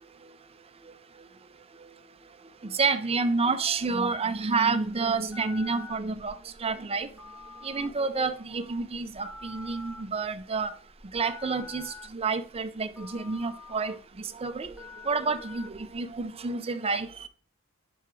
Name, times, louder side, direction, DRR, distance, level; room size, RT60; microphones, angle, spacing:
voice 1, 2.6-7.1 7.6-10.7 11.1-14.7 15.0-17.3, right 4 dB, 30° right, 0.6 m, -29 dB
Telephone, 4.8-16.2, left 3 dB, ahead, 1.7 m, -47 dB
10.5 x 4.6 x 3.2 m
head